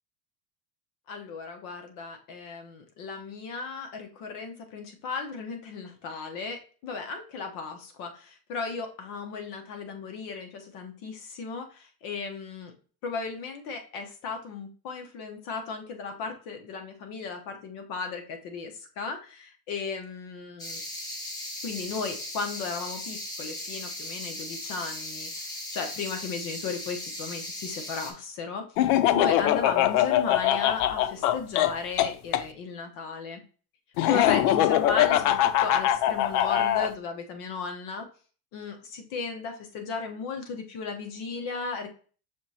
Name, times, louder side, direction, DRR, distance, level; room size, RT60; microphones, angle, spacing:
voice 1, 1.1-12.7 13.0-20.8 21.6-28.6 29.1-33.4 34.1-38.1 38.5-41.9, left 4 dB, 45° left, 4 dB, 0.9 m, -35 dB
sound 1, 20.6-28.1, left 1 dB, 10° left, 0.3 m, -37 dB
Laughter, 28.8-32.4 34.0-36.9, left 12 dB, 85° left, 0.5 m, -23 dB
6.2 x 3.0 x 2.7 m, 0.39 s
supercardioid pair, 150°, 44 cm